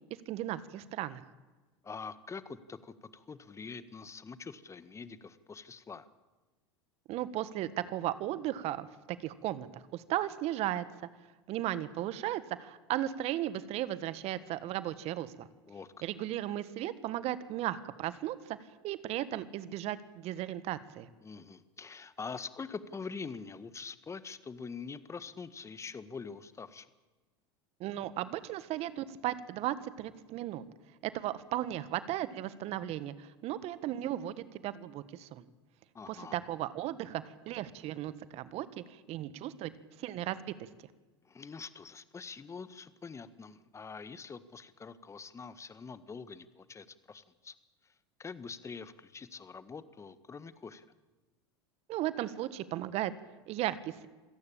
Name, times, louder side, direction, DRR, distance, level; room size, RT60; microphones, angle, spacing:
voice 1, 0.3-1.2 7.1-10.8 11.5-15.5 16.0-18.6 18.8-21.1 27.8-30.6 31.0-35.4 36.1-39.7 40.0-40.7 51.9-53.1 53.5-54.1, right 13 dB, 50° right, 15 dB, 1.6 m, -36 dB
voice 2, 1.8-6.1 15.7-15.9 21.2-26.9 35.9-36.3 41.2-47.5 47.8-47.9 48.2-50.8, left 5 dB, 20° left, 14 dB, 1.6 m, -45 dB
27.0 x 17.0 x 8.8 m, 1.2 s
hypercardioid pair, 85°, 13 cm